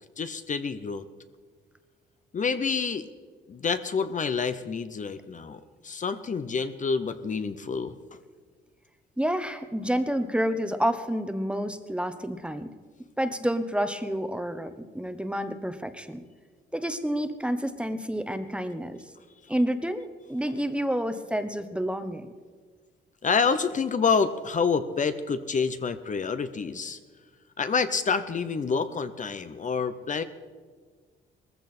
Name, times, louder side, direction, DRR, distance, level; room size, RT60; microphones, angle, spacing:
voice 1, 0.2-1.1 2.3-3.1 3.5-7.9 23.2-27.0 27.6-30.2, left 5 dB, 40° left, 11 dB, 0.9 m, -28 dB
voice 2, 9.2-12.7 13.2-16.2 16.7-19.0 19.5-22.3, equal, 5° right, 10 dB, 1.1 m, -29 dB
19.5 x 15.0 x 4.4 m, 1.5 s
cardioid pair, 90°, 20 cm